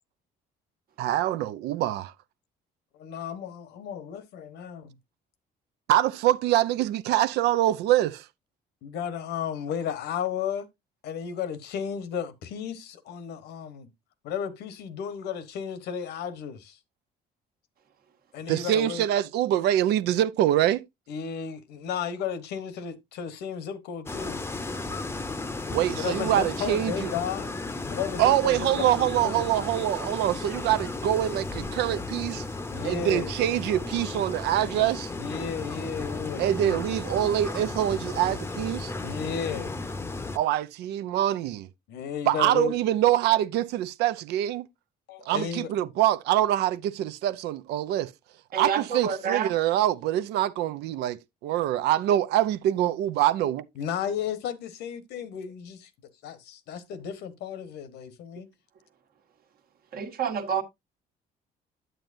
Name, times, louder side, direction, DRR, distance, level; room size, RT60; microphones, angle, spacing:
voice 1, 1.0-2.1 5.9-8.3 18.5-20.8 25.7-27.1 28.2-32.4 32.8-35.1 36.4-38.9 40.3-41.7 42.3-44.6 45.3-48.1 48.6-53.7, right 12 dB, 85° right, 0.5 m, -25 dB
voice 2, 2.9-5.0 8.8-10.7 11.0-13.9 14.2-16.8 18.3-19.1 21.1-24.4 25.9-27.5 27.9-29.5 32.7-33.3 33.9-34.0 35.2-36.5 39.0-39.7 41.9-42.7 45.1-45.7 53.8-55.9 56.2-58.5, left 8 dB, 80° left, 1.1 m, -33 dB
sound 1, 24.1-40.4, left 3 dB, 15° left, 0.7 m, -34 dB
voice 3, 48.5-49.5 59.9-60.6, right 7 dB, 60° right, 1.4 m, -28 dB
8.9 x 7.8 x 2.6 m
cardioid pair, 110°, 17 cm